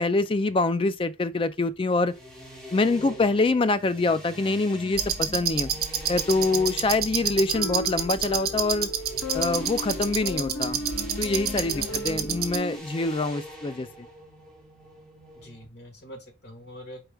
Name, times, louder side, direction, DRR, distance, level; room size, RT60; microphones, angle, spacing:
voice 1, 0.0-2.1 2.7-5.7 6.1-8.9 9.3-10.8 11.2-13.9, left 3 dB, 25° left, 0.3 m, -25 dB
sound 1, 2.0-15.6, equal, 5° left, 1.1 m, -43 dB
voice 2, 2.9-3.3 11.7-12.2 15.3-17.0, left 1 dB, 50° left, 1.6 m, -44 dB
sound 2, 4.9-12.6, right 8 dB, 45° right, 0.9 m, -29 dB
sound 3, 7.5-12.8, left 2 dB, 75° left, 0.6 m, -36 dB
4.7 x 4.5 x 2.3 m
head